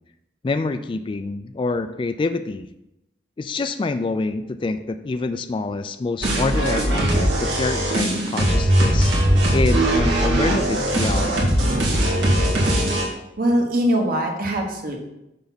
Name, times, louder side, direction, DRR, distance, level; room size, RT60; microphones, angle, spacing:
voice 1, 0.4-2.7 3.4-9.1 9.5-11.6, left 3 dB, 30° left, 10 dB, 0.3 m, -26 dB
sound 1, 6.2-13.0, right 1 dB, 85° right, 2.0 m, -20 dB
voice 2, 13.4-15.0, equal, 55° right, 1 dB, 1.3 m, -21 dB
6.8 x 5.6 x 4.0 m, 0.88 s
head